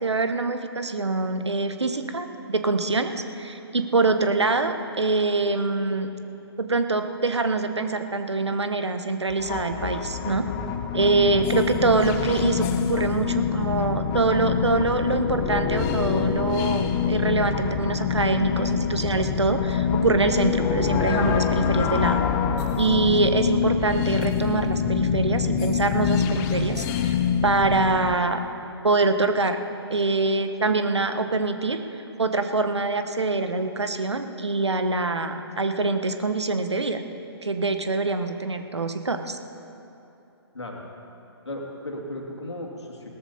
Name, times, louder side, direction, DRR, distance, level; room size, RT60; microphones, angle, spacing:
voice 1, 0.0-6.1 6.6-10.4 10.9-22.2 22.8-27.1 27.4-28.4 28.8-29.6 29.9-31.8 32.2-37.0 37.4-39.4, right 3 dB, 80° right, 8 dB, 1.2 m, -24 dB
sound 1, 9.3-28.2, left 7 dB, 20° left, 0.6 m, -25 dB
voice 2, 41.4-43.1, left 1 dB, 80° left, 0 dB, 2.7 m, -35 dB
18.0 x 13.5 x 4.2 m, 2.9 s
figure-of-eight pair, 135°, 14 cm